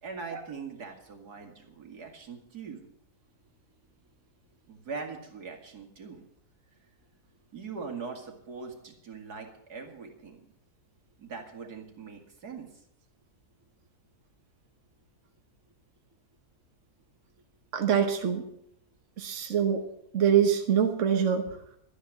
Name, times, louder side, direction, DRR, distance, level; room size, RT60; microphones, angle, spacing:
voice 1, 0.0-2.8 4.7-6.2 7.5-10.4 11.2-12.7, right 5 dB, 85° right, 2 dB, 2.8 m, -41 dB
voice 2, 17.7-18.4 19.2-19.8 20.1-21.4, right 8 dB, 55° right, 4 dB, 1.5 m, -24 dB
12.5 x 10.0 x 7.4 m, 0.72 s
omnidirectional pair, 1.6 m